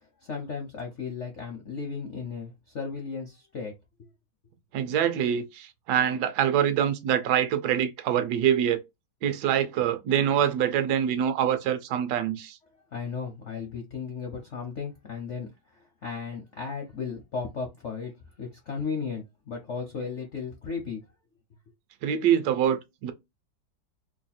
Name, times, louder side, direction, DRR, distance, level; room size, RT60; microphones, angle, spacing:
voice 1, 0.2-3.7 12.9-18.1 18.4-21.0, left 5 dB, 70° left, 0.7 m, -35 dB
voice 2, 4.7-8.8 9.2-12.6 22.0-23.1, right 9 dB, 70° right, 1.1 m, -25 dB
3.3 x 2.4 x 4.1 m
omnidirectional pair, 2.2 m